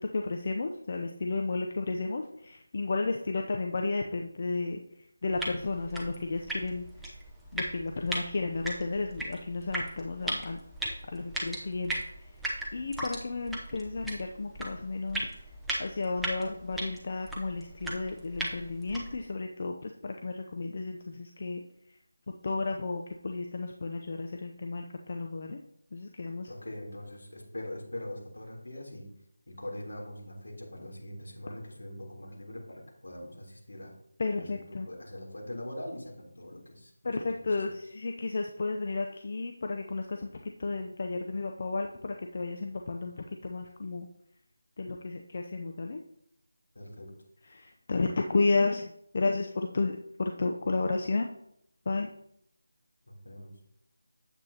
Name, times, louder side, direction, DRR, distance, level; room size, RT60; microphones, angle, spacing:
voice 1, 0.0-4.8 5.2-7.2 7.5-10.6 11.1-12.3 12.7-15.3 15.8-21.6 22.4-25.6 25.9-26.5 34.2-34.9 37.0-44.1 44.8-46.0 47.5-51.3 51.9-52.1, left 3 dB, 45° left, 3 dB, 0.6 m, -32 dB
sound 1, 5.3-19.3, right 1 dB, ahead, 0.7 m, -38 dB
voice 2, 26.5-29.1 29.5-33.9 34.4-34.6 34.8-37.7 46.7-47.2 53.1-53.6, left 1 dB, 75° left, -1 dB, 3.3 m, -42 dB
9.5 x 8.1 x 2.9 m, 0.73 s
figure-of-eight pair, 165°, 0 cm